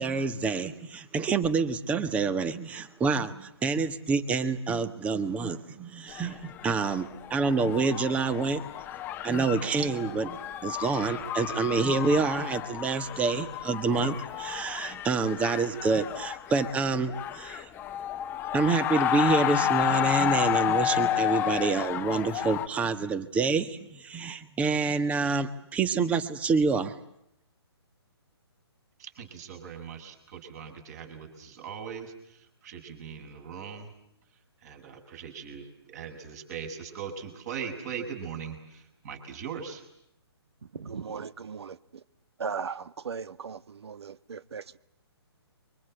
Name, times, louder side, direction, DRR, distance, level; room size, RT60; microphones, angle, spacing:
voice 1, 0.0-8.6 9.2-17.7 18.5-26.9, right 4 dB, 10° right, 1.3 m, -27 dB
sound 1, 6.1-22.7, left 11 dB, 15° left, 1.1 m, -31 dB
voice 2, 29.0-33.9 34.6-39.9, right 7 dB, 40° right, 6.9 m, -40 dB
voice 3, 40.6-42.0 42.4-44.8, right 6 dB, 70° right, 1.4 m, -38 dB
29.5 x 24.5 x 7.9 m
hypercardioid pair, 155°, 14 cm